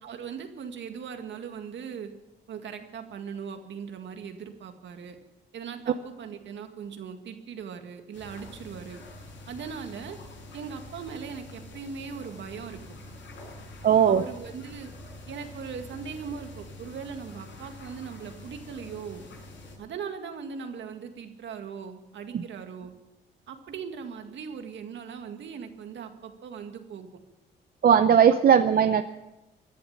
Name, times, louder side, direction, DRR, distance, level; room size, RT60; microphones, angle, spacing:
voice 1, 0.0-2.1 2.5-5.2 5.5-9.0 9.5-10.2 10.5-12.8 14.1-14.9 15.3-19.2 19.8-22.9 23.5-27.1, right 6 dB, 65° right, 6 dB, 2.0 m, -39 dB
sound 1, 8.1-19.8, left 2 dB, 70° left, 7.2 m, -46 dB
voice 2, 13.8-14.2 22.3-22.4 27.8-29.0, right 8 dB, 50° right, 10 dB, 0.7 m, -18 dB
17.5 x 11.5 x 7.3 m, 1.0 s
cardioid pair, 90°, 20 cm